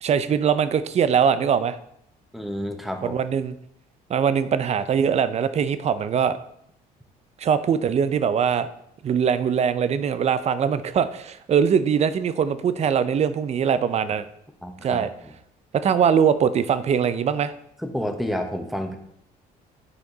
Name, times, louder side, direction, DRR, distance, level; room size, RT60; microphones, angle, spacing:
voice 1, 0.0-1.8 3.0-3.5 4.1-6.4 7.4-8.7 9.0-14.2 14.8-15.1 15.8-17.5, right 7 dB, 40° right, 13 dB, 0.6 m, -22 dB
voice 2, 2.3-3.2 14.6-15.3 17.8-19.0, equal, ahead, 5 dB, 1.1 m, -30 dB
9.8 x 5.1 x 3.9 m, 0.72 s
cardioid pair, 110°, 17 cm